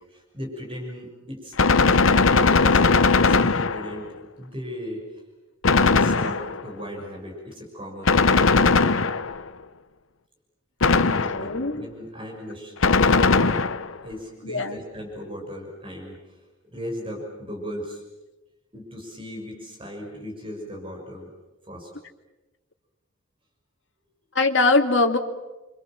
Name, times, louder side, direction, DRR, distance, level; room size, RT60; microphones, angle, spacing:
voice 1, 0.1-5.2 5.9-8.3 11.0-13.7 14.0-18.0 18.7-21.3 21.6-21.9, equal, 25° right, 0 dB, 6.2 m, -37 dB
Gunshot gunfire, 1.6-4.1 5.6-6.7 8.1-9.5 10.8-11.6 12.8-14.0, left 4 dB, 80° left, 0.9 m, -19 dB
voice 2, 11.3-11.8 14.4-14.8 24.3-25.2, left 3 dB, 65° left, 4 dB, 2.4 m, -21 dB
29.5 x 25.5 x 7.5 m, 1.1 s
head